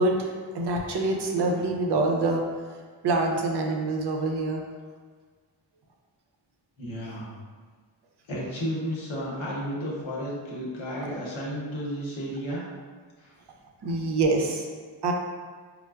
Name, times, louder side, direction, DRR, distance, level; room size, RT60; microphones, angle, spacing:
voice 1, 0.0-4.6 13.8-14.7 15.0-15.1, right 2 dB, 60° right, 1 dB, 0.6 m, -26 dB
voice 2, 6.8-7.3 8.3-12.6 13.2-13.3, equal, 85° left, -5 dB, 0.9 m, -32 dB
4.4 x 2.0 x 2.3 m, 1.5 s
cardioid pair, 50°, 45 cm